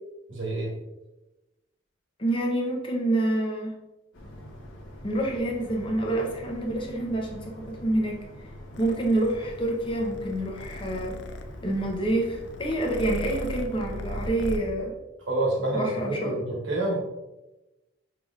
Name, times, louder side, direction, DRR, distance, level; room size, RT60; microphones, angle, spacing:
voice 1, 0.3-0.7 15.3-17.0, right 2 dB, 75° right, -1 dB, 1.3 m, -27 dB
voice 2, 2.2-3.8 5.0-8.2 8.8-11.2 11.6-14.9 15.7-16.4, right 1 dB, 25° left, 0 dB, 0.7 m, -27 dB
sound 1, 4.1-14.7, equal, 85° left, 1.0 m, -45 dB
Purr, 8.7-14.6, left 1 dB, 65° left, 0.4 m, -38 dB
5.7 x 3.3 x 2.4 m, 1.0 s
head